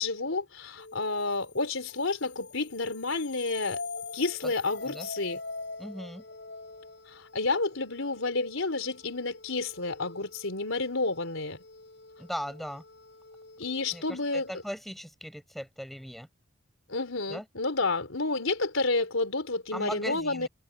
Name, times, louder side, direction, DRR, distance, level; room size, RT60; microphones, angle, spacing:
voice 1, 0.0-3.8 4.1-5.4 7.1-11.6 13.6-14.5 16.9-20.5, left 3 dB, 85° left, 4.2 m, -30 dB
sound 1, 0.8-14.7, left 3 dB, 60° left, 7.6 m, -45 dB
voice 2, 5.8-6.2 12.2-12.8 13.9-16.3 17.3-17.4 19.7-20.5, equal, ahead, 7.8 m, -38 dB
head